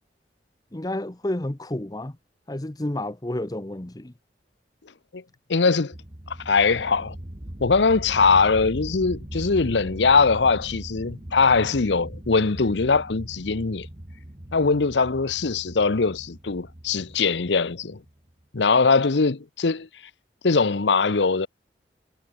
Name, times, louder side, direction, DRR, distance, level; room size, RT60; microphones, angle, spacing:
voice 1, 0.7-2.2 2.5-4.1, left 1 dB, 20° left, 0.9 m, -30 dB
voice 2, 5.5-5.9 6.3-7.1 7.6-13.9 14.5-18.0 18.5-19.9 20.4-21.5, left 4 dB, 75° left, 0.8 m, -21 dB
sound 1, 5.9-18.3, right 1 dB, 30° right, 1.8 m, -39 dB
head